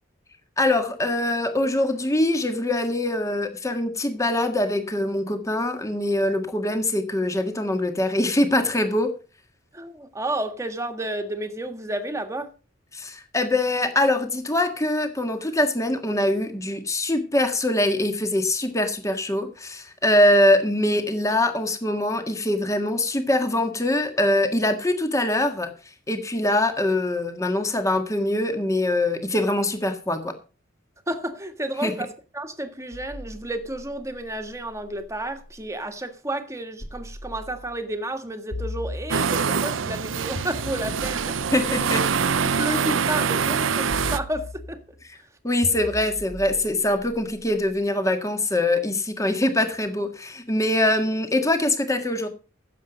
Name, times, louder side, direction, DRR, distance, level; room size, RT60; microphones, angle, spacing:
voice 1, 0.6-9.1 12.9-25.7 26.1-30.3 31.8-31.9 41.5-42.0 45.4-52.3, left 1 dB, 15° left, 1.7 m, -23 dB
voice 2, 9.7-12.5 31.1-41.8 42.4-44.8, right 1 dB, 15° right, 1.7 m, -31 dB
sound 1, 32.9-35.7 36.8-37.8 38.5-39.6 40.3-42.6 43.9-45.0 45.6-47.8, left 1 dB, 75° left, 3.3 m, -39 dB
sound 2, 39.1-44.2, right 6 dB, 80° right, 0.7 m, -24 dB
16.0 x 7.6 x 5.2 m
head